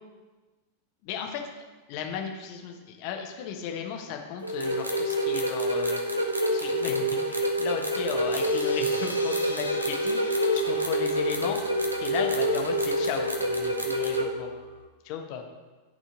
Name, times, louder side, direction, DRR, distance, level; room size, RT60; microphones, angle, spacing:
voice 1, 1.0-1.4 1.9-6.0 6.5-11.6 12.0-14.5 15.0-15.4, left 7 dB, 45° left, 3 dB, 1.1 m, -35 dB
sound 1, 4.4-14.2, equal, 85° right, 1.0 m, -27 dB
sound 2, 7.8-14.9, left 2 dB, 80° left, 0.8 m, -38 dB
11.0 x 4.4 x 4.6 m, 1.3 s
figure-of-eight pair, 90°, 0 cm